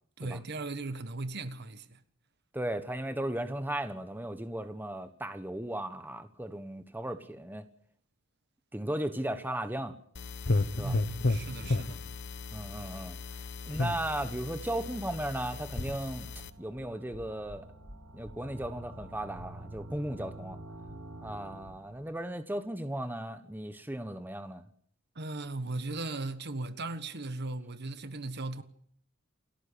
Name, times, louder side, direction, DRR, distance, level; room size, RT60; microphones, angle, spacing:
voice 1, 0.2-2.0 10.8-12.0 25.1-28.6, right 2 dB, 50° right, 1.4 m, -37 dB
voice 2, 2.5-7.7 8.7-9.9 10.8-11.0 12.5-13.2 13.7-16.3 16.6-17.7 18.1-20.6 21.2-24.6, right 1 dB, 10° right, 1.3 m, -36 dB
sound 1, 10.1-16.5, left 2 dB, 55° left, 1.0 m, -33 dB
sound 2, 15.7-22.0, right 1 dB, 80° right, 6.0 m, -48 dB
28.5 x 13.5 x 8.7 m
head